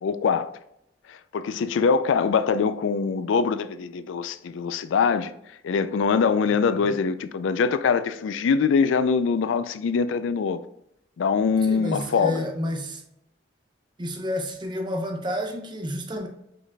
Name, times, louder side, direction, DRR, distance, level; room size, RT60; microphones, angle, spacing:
voice 1, 0.0-0.5 1.1-5.3 5.6-10.6 11.2-12.5, left 5 dB, 80° left, 0.4 m, -23 dB
voice 2, 11.7-13.0 14.0-16.3, equal, 25° right, 0.6 m, -30 dB
5.1 x 4.0 x 2.2 m
head